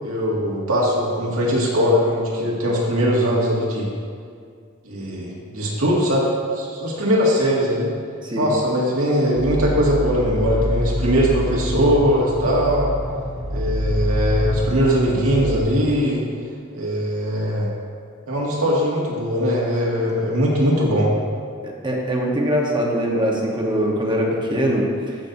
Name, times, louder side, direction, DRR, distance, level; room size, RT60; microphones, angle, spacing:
voice 1, 0.0-3.9 4.8-6.3 6.5-7.9 8.4-12.9 13.5-16.2 16.7-17.7 18.3-21.1, equal, 90° right, -4 dB, 2.1 m, -20 dB
sound 1, 9.4-15.6, left 1 dB, 5° left, 1.5 m, -26 dB
voice 2, 21.8-25.2, equal, 20° right, -2 dB, 1.1 m, -22 dB
15.0 x 6.4 x 2.7 m, 2.2 s
head